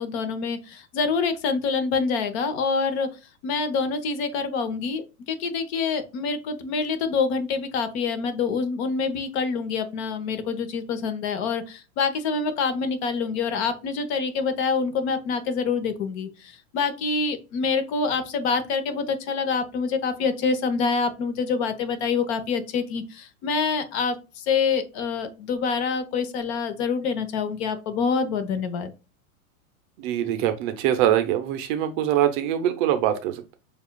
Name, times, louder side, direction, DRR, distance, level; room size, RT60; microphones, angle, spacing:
voice 1, 0.0-3.1 3.4-28.9, left 5 dB, 50° left, 9 dB, 0.9 m, -26 dB
voice 2, 30.0-33.5, right 11 dB, 40° right, 8 dB, 0.6 m, -23 dB
7.0 x 2.4 x 2.3 m, 0.30 s
hypercardioid pair, 130°, 42 cm